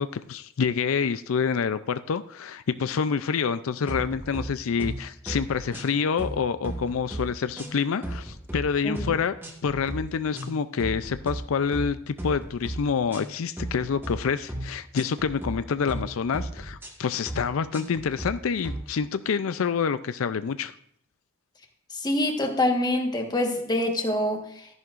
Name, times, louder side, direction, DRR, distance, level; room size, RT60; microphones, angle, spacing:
voice 1, 0.0-9.3 9.6-20.7, left 6 dB, 80° left, 12 dB, 0.4 m, -27 dB
sound 1, 3.9-4.5 4.8-5.0 5.3-5.9 6.2-7.2 7.6-8.6 9.0-9.1 9.4-10.0 10.3-10.5 10.8-11.4 11.7-11.9 12.2-12.8 13.1-13.3 13.6-14.1 14.5-14.7 15.0-15.5 15.9-16.1 16.3-16.9 17.3-17.4 17.7-18.3 18.6-18.8, right 1 dB, 10° right, 1.6 m, -35 dB
voice 2, 8.8-9.1 21.9-24.7, left 1 dB, 20° left, 3 dB, 1.3 m, -26 dB
13.5 x 11.0 x 2.5 m, 0.69 s
head